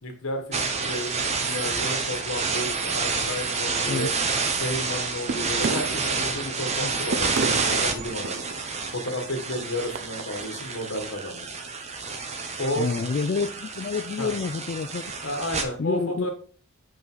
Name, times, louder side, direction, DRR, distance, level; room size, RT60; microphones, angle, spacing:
voice 1, 0.0-4.1 4.6-8.4 8.9-11.5 12.6-12.9 14.2-14.3 15.2-16.3, left 1 dB, 70° left, 4 dB, 1.7 m, -32 dB
sound 1, 0.5-15.6, right 4 dB, 30° right, 0.8 m, -29 dB
voice 2, 3.9-4.2 6.8-6.9 12.8-15.1 15.8-16.3, left 4 dB, 45° left, 7 dB, 0.4 m, -28 dB
sound 2, 5.3-10.6, right 4 dB, 55° right, 0.4 m, -33 dB
5.3 x 5.2 x 3.9 m, 0.43 s
head